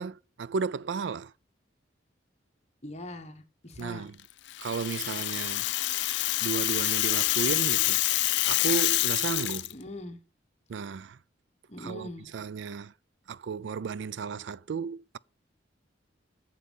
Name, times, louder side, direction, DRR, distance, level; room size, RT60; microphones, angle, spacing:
voice 1, 0.0-1.3 3.8-4.2 4.6-5.7 6.4-8.0 8.4-9.7 10.7-11.2 11.8-12.9 13.3-15.2, right 5 dB, 75° right, 0.4 m, -34 dB
voice 2, 2.8-4.1 9.7-10.2 11.7-12.3, left 1 dB, 35° left, 1.4 m, -42 dB
Rattle (instrument), 4.5-9.7, left 17 dB, 65° left, 0.3 m, -27 dB
8.2 x 7.5 x 5.4 m
head